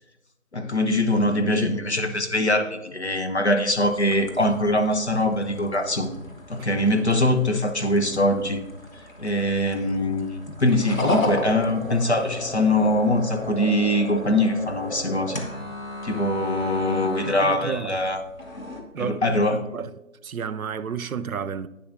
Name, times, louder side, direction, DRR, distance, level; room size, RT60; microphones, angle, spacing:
voice 1, 0.5-6.1 6.5-8.6 9.2-15.4 16.0-18.2 19.0-19.6, left 1 dB, 55° left, 1.0 m, -23 dB
sound 1, 3.7-18.8, left 1 dB, 75° left, 1.8 m, -35 dB
voice 2, 17.4-18.0 18.9-19.9 20.2-21.7, right 7 dB, 90° right, 0.6 m, -31 dB
10.5 x 9.4 x 2.6 m
figure-of-eight pair, 175°, 41 cm